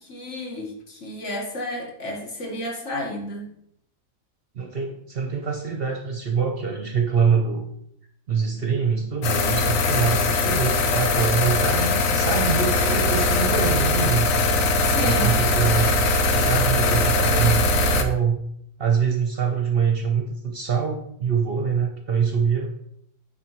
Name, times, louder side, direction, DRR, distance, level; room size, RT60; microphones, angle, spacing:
voice 1, 0.0-3.5 14.8-15.4, left 1 dB, 60° left, -1 dB, 1.8 m, -32 dB
voice 2, 4.5-7.6 8.3-14.4 15.0-18.4 18.8-22.7, right 6 dB, 55° right, 3 dB, 0.8 m, -24 dB
sound 1, 9.2-18.0, left 2 dB, 75° left, 1.1 m, -21 dB
9.5 x 4.0 x 3.0 m, 0.73 s
omnidirectional pair, 1.4 m